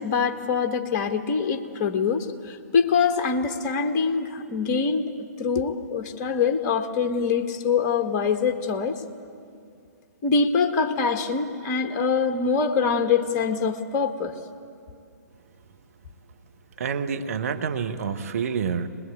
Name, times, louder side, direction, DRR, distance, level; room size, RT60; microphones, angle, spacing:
voice 1, 0.0-5.1 5.4-9.0 10.2-14.3, left 5 dB, 30° left, 6 dB, 1.4 m, -24 dB
voice 2, 16.8-18.9, right 6 dB, 55° right, 6 dB, 1.3 m, -28 dB
21.5 x 21.0 x 8.8 m, 2.4 s
figure-of-eight pair, 125°, 9 cm